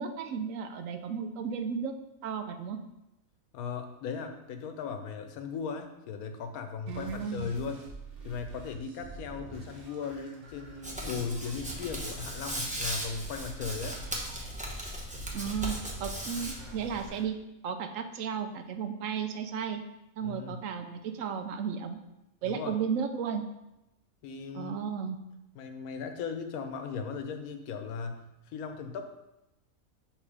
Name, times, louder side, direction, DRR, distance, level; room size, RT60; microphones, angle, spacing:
voice 1, 0.0-1.9 2.2-2.8 6.9-7.5 15.3-17.3 17.6-19.8 20.2-22.0 22.4-23.4 24.5-25.2, right 7 dB, 70° right, 6 dB, 0.9 m, -34 dB
voice 2, 3.5-7.8 8.2-14.0 20.2-20.7 22.4-22.8 24.2-24.7 25.5-29.1, left 5 dB, 85° left, 7 dB, 1.1 m, -37 dB
sound 1, 6.9-17.2, right 3 dB, 85° right, 1.6 m, -48 dB
Hands, 10.8-17.1, equal, 10° right, 0.6 m, -37 dB
6.5 x 3.1 x 4.8 m, 0.92 s
omnidirectional pair, 1.5 m